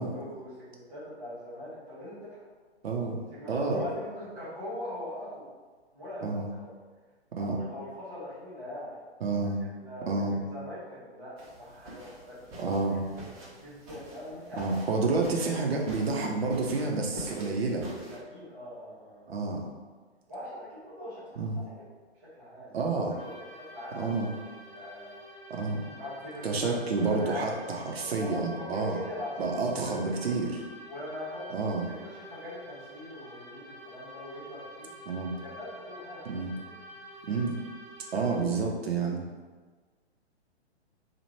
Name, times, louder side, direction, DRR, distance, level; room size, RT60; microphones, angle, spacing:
voice 1, 0.0-2.4 3.3-5.5 5.9-6.7 7.4-9.0 9.3-9.4 9.8-10.2 10.5-12.7 13.3-14.7 15.4-15.5 17.7-19.4 20.3-21.7 22.2-22.8 23.1-24.3 24.7-25.1 26.0-27.6 27.9-30.3 30.9-31.5 31.9-34.9 35.4-36.3, left 1 dB, 5° right, -14 dB, 0.3 m, -42 dB
voice 2, 2.8-3.2 3.5-3.8 6.2-6.5 7.4-7.6 9.2-9.6 10.1-10.4 12.6-13.1 14.5-17.9 19.3-19.6 21.4-21.6 22.7-23.2 24.0-24.3 25.5-25.8 26.4-29.0 29.4-30.6 31.5-31.8 35.1-35.4 36.2-36.5 37.3-37.6 38.1-39.3, right 3 dB, 65° right, 0 dB, 0.9 m, -29 dB
sound 1, 11.4-18.2, right 1 dB, 25° right, 0.9 m, -47 dB
sound 2, 23.2-38.4, equal, 15° left, 1.4 m, -48 dB
3.2 x 2.4 x 4.2 m, 1.4 s
figure-of-eight pair, 125°, 34 cm